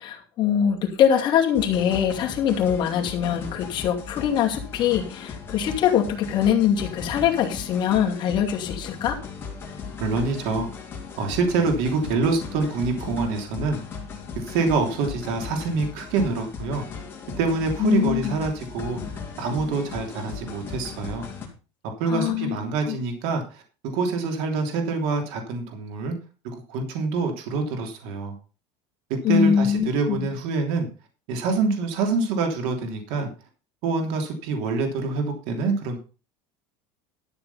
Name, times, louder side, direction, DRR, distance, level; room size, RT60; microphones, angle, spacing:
voice 1, 0.0-9.2 17.8-18.4 22.1-22.6 22.9-23.0 29.2-30.3, left 9 dB, 35° left, 1 dB, 2.5 m, -23 dB
sound 1, 1.5-21.5, left 5 dB, 15° left, 3.4 m, -37 dB
voice 2, 10.0-10.7 11.2-13.8 14.3-16.8 17.4-21.3 22.0-26.1 26.4-28.3 29.1-30.9 31.3-33.3 33.8-36.0, right 4 dB, 65° right, 4 dB, 3.2 m, -26 dB
12.5 x 7.1 x 5.7 m, 0.35 s
cardioid pair, 160°, 13 cm